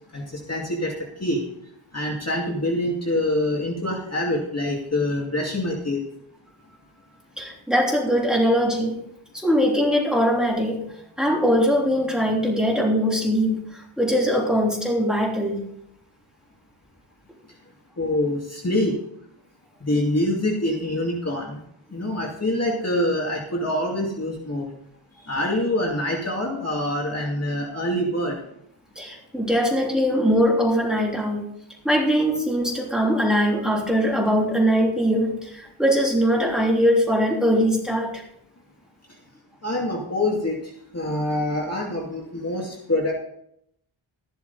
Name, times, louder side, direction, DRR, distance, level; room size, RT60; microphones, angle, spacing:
voice 1, 0.1-0.9 1.2-1.4 1.9-6.0 18.0-18.9 19.8-21.6 21.9-24.7 25.2-28.3 39.6-40.6 40.9-43.1, left 1 dB, 30° left, -2 dB, 2.4 m, -25 dB
voice 2, 7.4-9.0 9.3-10.8 11.2-15.6 28.9-31.5 31.8-38.2, equal, ahead, -2 dB, 3.3 m, -21 dB
13.5 x 12.0 x 4.1 m, 0.73 s
wide cardioid pair, 140°, 49 cm